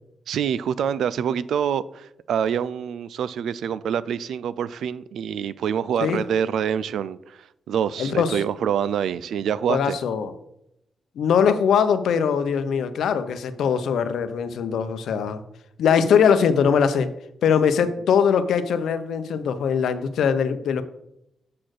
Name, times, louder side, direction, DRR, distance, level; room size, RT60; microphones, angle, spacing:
voice 1, 0.3-10.0, right 8 dB, 85° right, 0.4 m, -26 dB
voice 2, 8.0-8.4 9.7-10.3 11.2-15.4 15.8-17.1 17.4-20.8, left 7 dB, 85° left, 0.7 m, -21 dB
7.5 x 4.3 x 6.5 m
wide cardioid pair, 135°, 0 cm